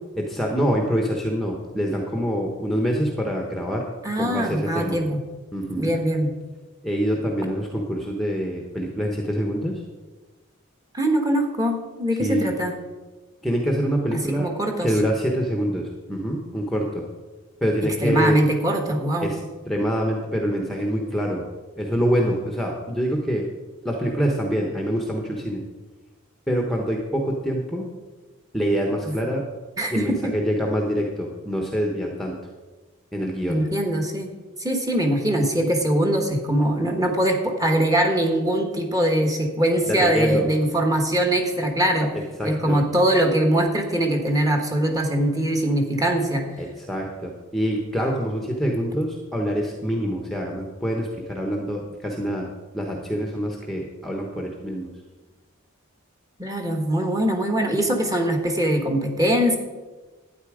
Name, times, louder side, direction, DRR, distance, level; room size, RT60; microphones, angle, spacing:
voice 1, 0.2-3.8 4.2-5.0 5.5-6.0 6.8-9.8 12.2-12.5 13.4-14.5 14.8-17.0 17.6-18.4 19.2-19.4 19.7-21.4 21.8-23.5 23.8-25.6 26.5-27.9 28.5-29.5 29.9-32.3 33.1-33.6 39.9-40.5 42.4-42.8 46.6-52.5 52.7-54.9, equal, ahead, 1 dB, 1.0 m, -25 dB
voice 2, 4.0-5.2 5.8-6.3 10.9-12.8 14.1-14.9 18.0-19.3 29.0-29.1 29.8-30.3 33.5-34.3 34.6-42.1 42.4-46.4 56.4-59.6, right 1 dB, 15° right, 3 dB, 1.4 m, -22 dB
12.0 x 9.1 x 5.0 m, 1.3 s
head